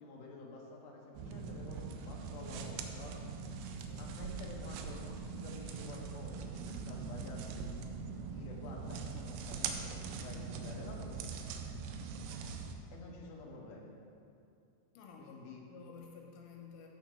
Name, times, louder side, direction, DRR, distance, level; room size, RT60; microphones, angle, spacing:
voice 1, 0.0-3.2 3.9-7.8 8.2-11.3 12.9-13.9 15.2-15.6, left 3 dB, 65° left, -3 dB, 2.8 m, -50 dB
sound 1, 1.1-12.8, right 5 dB, 80° right, 2.6 m, -42 dB
voice 2, 3.8-4.1 14.9-16.9, left 6 dB, 85° left, 0 dB, 3.3 m, -53 dB
12.0 x 8.8 x 3.2 m, 2.5 s
omnidirectional pair, 5.0 m